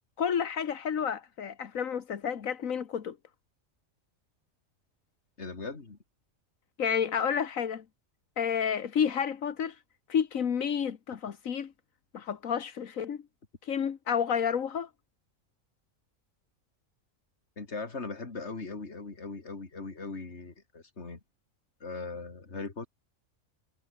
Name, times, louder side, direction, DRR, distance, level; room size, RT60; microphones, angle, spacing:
voice 1, 0.2-3.1 6.8-7.8 8.4-9.8 10.1-11.7 12.1-13.2 13.6-14.9, left 7 dB, 85° left, 1.7 m, -30 dB
voice 2, 5.4-6.0 17.6-21.2 21.8-22.9, left 3 dB, 55° left, 3.0 m, -39 dB
omnidirectional pair, 1.4 m